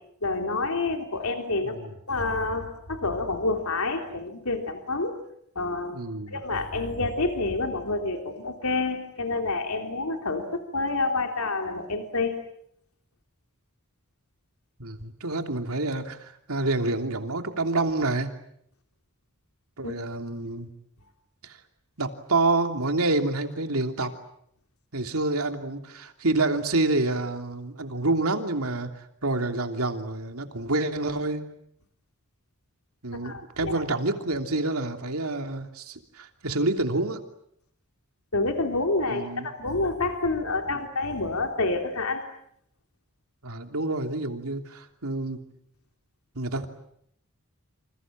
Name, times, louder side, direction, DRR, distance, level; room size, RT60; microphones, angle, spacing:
voice 1, 0.2-1.8 2.1-5.1 5.5-6.0 6.3-12.5 19.8-19.9 33.2-33.8 38.3-42.2, left 3 dB, 85° left, 4 dB, 3.4 m, -28 dB
voice 2, 5.9-6.3 14.8-18.3 19.8-20.7 21.4-21.6 22.0-24.1 24.9-28.9 29.2-31.5 33.0-37.2 39.1-39.5 43.4-45.4 46.3-46.7, right 2 dB, 80° right, 6 dB, 3.1 m, -28 dB
28.0 x 27.5 x 7.7 m, 0.71 s
head